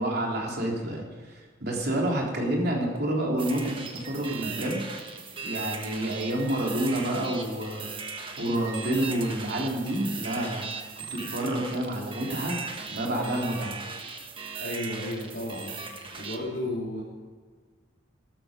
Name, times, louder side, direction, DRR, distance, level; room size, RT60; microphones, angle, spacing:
voice 1, 0.0-5.0 5.4-7.9 8.4-10.7 11.0-12.6 12.9-13.8, right 1 dB, 50° right, -1 dB, 3.7 m, -29 dB
sound 1, 3.4-16.4, right 5 dB, 25° right, 1.4 m, -38 dB
voice 2, 14.6-15.7 16.2-17.0, left 1 dB, 50° left, -7 dB, 3.8 m, -33 dB
13.5 x 13.5 x 5.3 m, 1.5 s
head